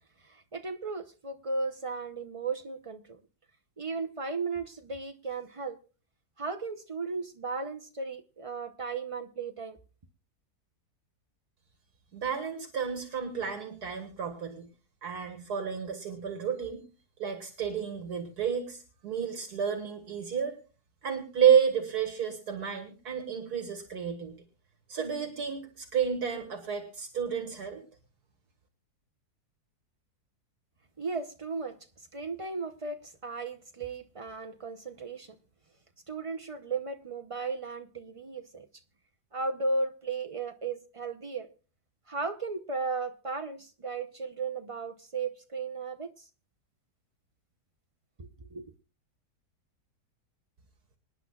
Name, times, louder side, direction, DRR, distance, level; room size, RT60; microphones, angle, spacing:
voice 1, 0.2-3.2 3.8-5.8 6.4-9.8 31.0-35.4 36.1-38.7 39.3-41.5 42.1-46.3 48.2-48.7, right 3 dB, 50° right, 0.4 m, -35 dB
voice 2, 12.1-14.7 15.0-16.8 17.2-20.6 21.0-24.4 24.9-27.8, right 7 dB, 70° right, 2.1 m, -30 dB
26.0 x 10.0 x 2.3 m
omnidirectional pair, 1.7 m